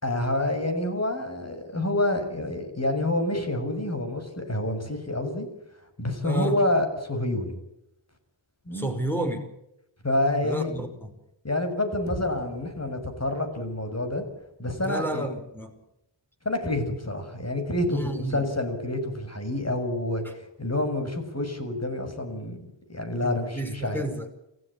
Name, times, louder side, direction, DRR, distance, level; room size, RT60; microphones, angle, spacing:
voice 1, 0.0-5.5 6.0-7.6 8.7-8.9 10.0-10.8 11.4-14.3 14.6-15.3 16.5-22.6 22.9-24.1, left 1 dB, 35° left, 7 dB, 6.7 m, -28 dB
voice 2, 6.2-6.6 8.7-9.4 10.4-11.1 14.8-15.7 17.9-18.5 23.2-24.3, right 1 dB, 5° left, 5 dB, 5.4 m, -31 dB
sound 1, 12.1-16.4, right 2 dB, 30° right, 5.3 m, -45 dB
28.0 x 16.0 x 8.7 m, 0.87 s
wide cardioid pair, 65°, 46 cm